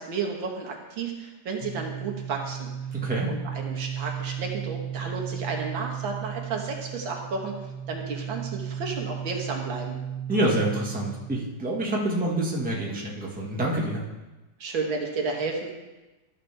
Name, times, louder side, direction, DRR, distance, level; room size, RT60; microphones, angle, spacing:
voice 1, 0.0-2.7 3.3-10.0 14.6-15.7, right 4 dB, 80° right, 1 dB, 2.0 m, -32 dB
sound 1, 1.6-11.4, right 8 dB, 85° left, 2.1 m, -35 dB
voice 2, 2.9-3.3 10.3-14.1, right 1 dB, 5° right, -3 dB, 1.2 m, -27 dB
13.0 x 6.6 x 3.4 m, 1.1 s
omnidirectional pair, 2.1 m